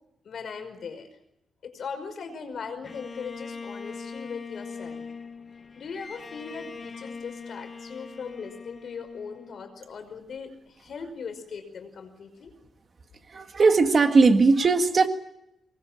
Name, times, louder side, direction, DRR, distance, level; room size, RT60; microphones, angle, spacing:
voice 1, 0.2-1.1 1.6-5.0 5.7-12.5, left 5 dB, 55° left, 7 dB, 5.4 m, -39 dB
Bowed string instrument, 2.8-10.1, left 4 dB, 30° left, 1.7 m, -41 dB
voice 2, 13.3-15.1, right 4 dB, 35° right, 6 dB, 1.8 m, -19 dB
25.0 x 21.0 x 8.7 m, 0.82 s
wide cardioid pair, 150°, 0 cm